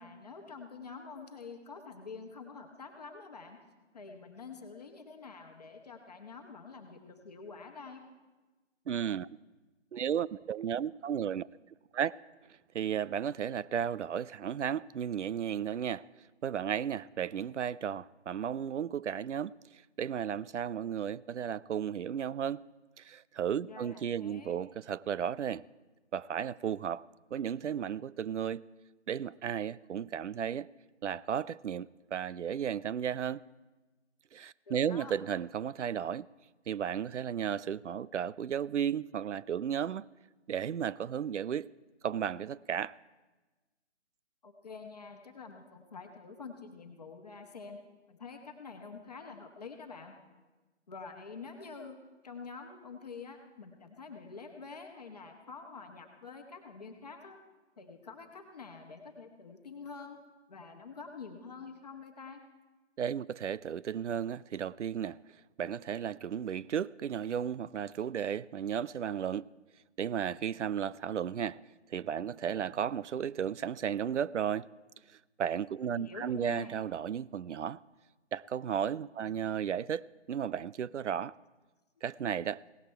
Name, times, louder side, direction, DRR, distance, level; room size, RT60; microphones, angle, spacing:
voice 1, 0.0-3.6 3.9-8.0 23.6-24.6 34.7-35.2 44.4-47.8 48.1-50.1 50.9-52.0 52.2-57.4 57.8-60.2 60.5-62.4 75.8-76.8 79.2-79.4, left 4 dB, 35° left, 1.2 m, -47 dB
voice 2, 8.9-9.3 9.9-11.5 11.9-12.2 12.7-16.0 16.4-22.6 23.0-25.6 26.1-27.0 27.3-28.6 29.1-30.7 31.0-33.4 34.3-36.3 36.7-40.0 40.5-41.7 42.0-43.0 63.0-65.2 65.6-69.5 70.0-71.6 71.9-74.7 75.4-77.8 78.3-81.4 82.0-82.6, right 8 dB, 75° right, 0.5 m, -34 dB
17.5 x 13.5 x 4.5 m
figure-of-eight pair, 160°, 36 cm